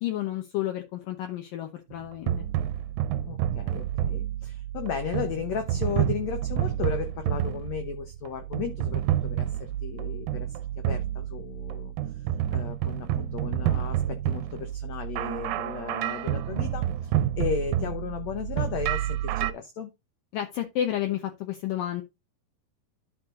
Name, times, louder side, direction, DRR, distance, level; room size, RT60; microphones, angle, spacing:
voice 1, 0.0-2.5 20.3-22.0, left 12 dB, 70° left, 2.4 m, -31 dB
sound 1, 1.9-19.5, right 11 dB, 75° right, 2.2 m, -29 dB
voice 2, 3.3-11.9 12.5-19.9, left 7 dB, 90° left, 1.5 m, -35 dB
11.0 x 4.6 x 3.7 m
omnidirectional pair, 4.4 m